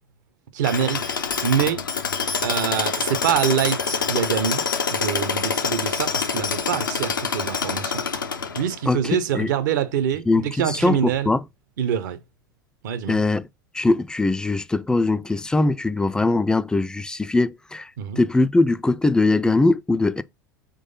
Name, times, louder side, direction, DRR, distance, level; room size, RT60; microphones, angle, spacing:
voice 1, 0.5-1.2 1.4-1.8 2.4-4.6 4.9-8.0 8.6-11.3 11.8-12.2 12.8-13.2 18.0-18.2, right 9 dB, 65° right, 0.7 m, -25 dB
Tools, 0.6-8.9, left 5 dB, 85° left, 0.6 m, -26 dB
voice 2, 10.3-11.4 13.1-13.4 13.7-17.9 18.2-20.2, left 2 dB, 5° left, 0.3 m, -21 dB
3.8 x 3.2 x 3.8 m
figure-of-eight pair, 80°, 11 cm